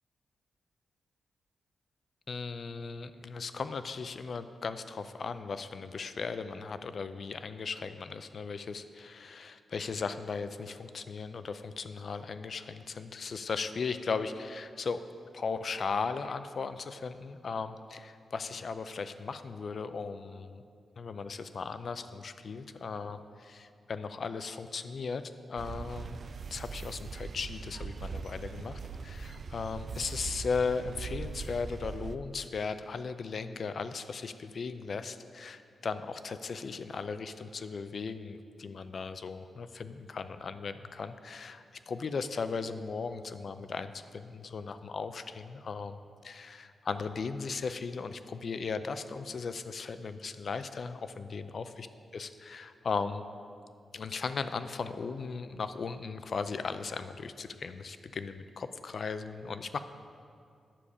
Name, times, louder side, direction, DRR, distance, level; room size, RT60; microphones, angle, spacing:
voice 1, 2.3-15.0 15.3-20.6 21.0-25.2 25.5-26.2 26.5-46.0 46.2-51.6 52.1-53.2 53.9-59.8, left 5 dB, 55° left, 11 dB, 0.4 m, -37 dB
sound 1, 25.6-32.2, right 5 dB, 55° right, 0.3 m, -41 dB
10.0 x 6.9 x 4.9 m, 2.4 s
cardioid pair, 90°, 0 cm